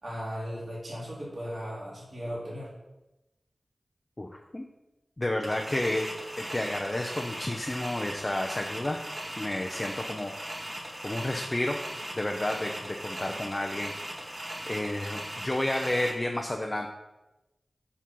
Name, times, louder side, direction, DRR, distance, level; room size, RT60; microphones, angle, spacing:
voice 1, 0.0-2.7, equal, 50° right, -7 dB, 3.0 m, -37 dB
voice 2, 4.2-4.6 5.2-9.0 9.4-10.3 11.0-11.8 12.1-13.9 14.7-16.9, left 1 dB, 30° left, 1 dB, 0.8 m, -31 dB
sound 1, 5.4-16.1, right 1 dB, 30° right, 1.8 m, -39 dB
7.6 x 4.2 x 5.6 m, 0.99 s
cardioid pair, 50°, 0 cm